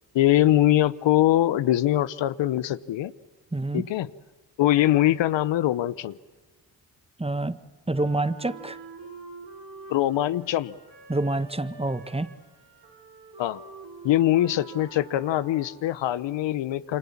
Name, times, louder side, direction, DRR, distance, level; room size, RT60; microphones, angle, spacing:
voice 1, 0.1-3.1 3.7-4.1 4.6-6.2 9.9-10.7 13.4-13.6 14.0-17.0, left 13 dB, 75° left, 16 dB, 0.9 m, -22 dB
voice 2, 3.5-3.9 7.2-7.6 7.9-8.8 11.1-12.3, right 2 dB, 15° right, 14 dB, 1.4 m, -27 dB
Wind instrument woodwind instrument, 7.9-16.1, right 3 dB, 70° right, 7.1 m, -46 dB
27.5 x 25.5 x 7.3 m, 1.2 s
supercardioid pair, 45°, 44 cm